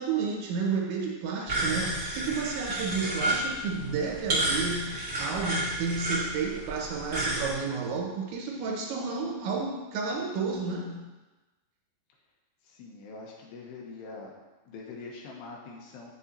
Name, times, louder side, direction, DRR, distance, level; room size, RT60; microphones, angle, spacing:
voice 1, 0.0-11.1, right 5 dB, 90° right, -1 dB, 3.5 m, -31 dB
sound 1, 1.4-7.5, right 1 dB, 70° right, 0.6 m, -31 dB
voice 2, 12.6-14.3 14.7-16.1, left 3 dB, 75° left, -1 dB, 2.9 m, -44 dB
8.3 x 7.2 x 2.8 m, 1.2 s
omnidirectional pair, 5.2 m